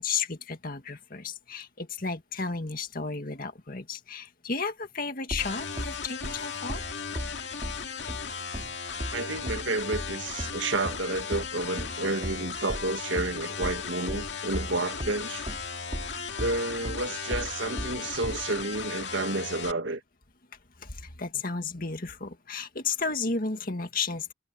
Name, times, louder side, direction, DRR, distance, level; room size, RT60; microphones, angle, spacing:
voice 1, 0.0-6.8 20.8-24.3, left 4 dB, 50° left, 2.1 m, -33 dB
sound 1, 5.3-15.2 15.5-18.5, equal, 35° right, 2.9 m, -36 dB
sound 2, 5.4-19.7, left 6 dB, 65° left, 2.3 m, -36 dB
voice 2, 9.1-15.5 16.4-20.0, right 2 dB, 85° right, 1.9 m, -30 dB
head